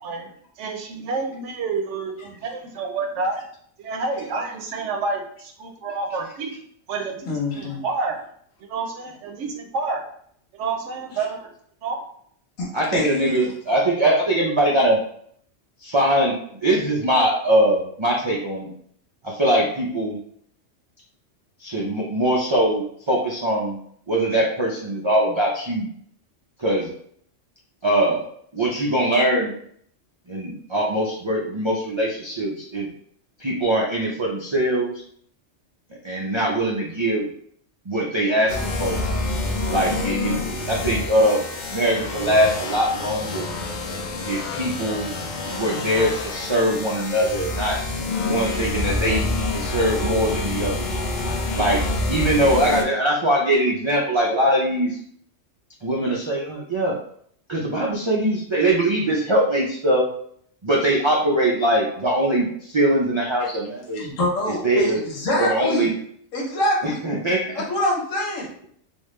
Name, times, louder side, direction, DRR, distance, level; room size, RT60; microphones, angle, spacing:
voice 1, 0.0-3.4 3.8-6.5 6.9-7.3 7.6-8.2 8.6-10.0 10.6-11.5 11.8-12.0, right 4 dB, 75° right, 3 dB, 1.0 m, -28 dB
voice 2, 7.3-7.8 11.1-11.2 12.6-13.5 63.4-63.5 63.9-65.9 66.3-67.0 67.5-68.5, left 1 dB, 85° left, -2 dB, 1.3 m, -25 dB
voice 3, 12.7-15.0 15.8-16.4 16.6-18.7 19.2-20.2 21.6-23.8 24.1-25.9 26.6-26.9 27.8-28.2 28.5-29.5 30.3-32.9 33.4-35.0 36.0-37.3 37.9-39.0 39.7-41.4 41.7-43.5 44.3-45.1 45.5-47.8 48.2-50.9 51.5-55.0 55.8-56.9 57.5-60.1 60.6-64.0 64.6-65.0 65.4-65.9 67.0-67.4, right 1 dB, 50° right, -3 dB, 0.3 m, -22 dB
sound 1, 38.5-52.8, left 2 dB, 60° left, 0.5 m, -27 dB
3.5 x 2.3 x 3.1 m, 0.63 s
omnidirectional pair, 1.3 m